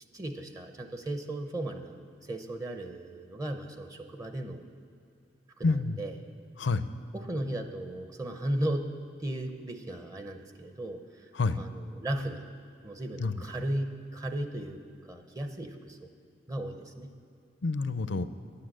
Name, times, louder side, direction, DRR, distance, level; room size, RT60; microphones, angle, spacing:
voice 1, 0.1-4.6 5.6-6.1 7.1-8.9 9.2-11.3 11.6-12.4 12.8-14.8 15.1-16.1 16.5-17.1, right 1 dB, 20° right, 6 dB, 0.6 m, -36 dB
voice 2, 5.6-6.0 6.6-6.9 11.3-11.6 13.2-13.3 17.6-18.3, left 3 dB, 75° left, 13 dB, 0.5 m, -28 dB
10.0 x 8.5 x 7.7 m, 2.5 s
head